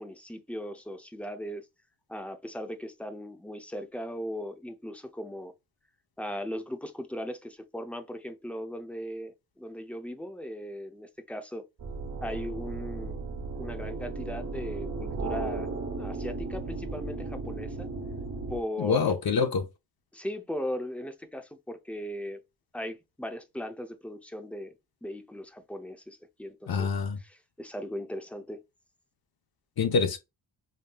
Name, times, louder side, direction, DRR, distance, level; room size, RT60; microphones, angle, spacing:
voice 1, 0.0-1.7 2.1-5.5 6.2-11.7 12.2-13.2 13.6-15.7 16.0-17.9 18.5-19.1 20.1-22.4 22.7-24.7 25.0-26.9 27.2-28.6, equal, 5° left, 0.4 m, -38 dB
sound 1, 11.8-18.6, right 3 dB, 40° right, 0.8 m, -35 dB
voice 2, 18.8-19.7 26.7-27.2 29.8-30.2, left 5 dB, 50° left, 0.8 m, -26 dB
5.3 x 2.7 x 2.3 m
wide cardioid pair, 155°, 46 cm